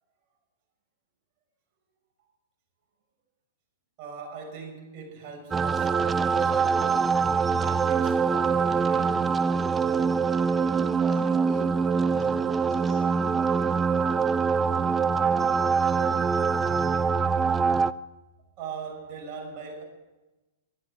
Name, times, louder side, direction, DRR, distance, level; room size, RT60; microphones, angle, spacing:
voice 1, 4.0-7.3 7.6-9.7 18.6-19.8, right 5 dB, 40° right, 6.3 m, -41 dB
sound 1, 5.5-17.9, right 5 dB, 15° right, 0.4 m, -24 dB
voice 2, 11.0-13.0, equal, 15° left, 2.8 m, -46 dB
13.0 x 12.0 x 8.5 m
hypercardioid pair, 120°, 0 cm